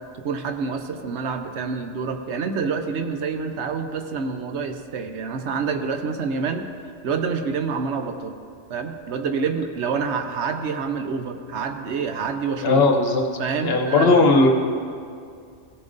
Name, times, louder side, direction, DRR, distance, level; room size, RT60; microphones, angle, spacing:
voice 1, 0.2-6.6 7.0-8.3 8.7-12.8 13.4-14.2, right 5 dB, 70° right, 7 dB, 1.0 m, -27 dB
voice 2, 12.6-13.2 13.6-14.5, left 3 dB, 60° left, 3 dB, 1.1 m, -17 dB
16.0 x 7.1 x 3.9 m, 2.3 s
omnidirectional pair, 1.2 m